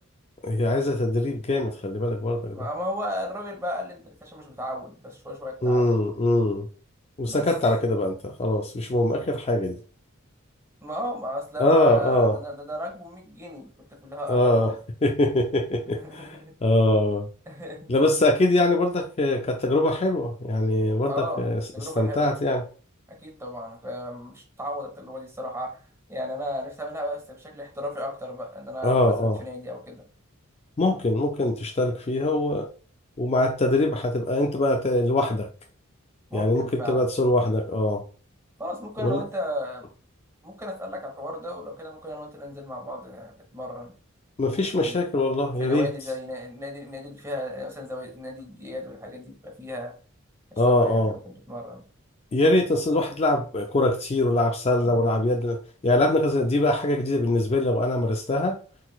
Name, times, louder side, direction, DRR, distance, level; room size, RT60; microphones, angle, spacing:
voice 1, 0.4-2.7 5.6-6.7 7.2-9.8 11.6-12.4 14.3-14.7 15.0-17.3 17.9-21.6 22.0-22.6 28.8-29.4 30.8-32.7 33.2-35.5 36.3-38.0 39.0-39.2 44.4-45.9 50.6-51.2 52.3-58.6, left 1 dB, 30° left, 0.4 m, -23 dB
voice 2, 2.5-6.0 7.2-7.4 10.8-13.7 14.0-14.8 16.0-16.5 17.5-17.9 21.1-21.4 21.7-22.3 23.1-25.8 26.1-30.0 36.3-37.1 38.6-39.9 40.4-43.9 44.5-45.0 45.6-49.9 50.5-51.9 54.8-55.1, equal, 15° right, 1.1 m, -35 dB
4.2 x 3.9 x 2.3 m
head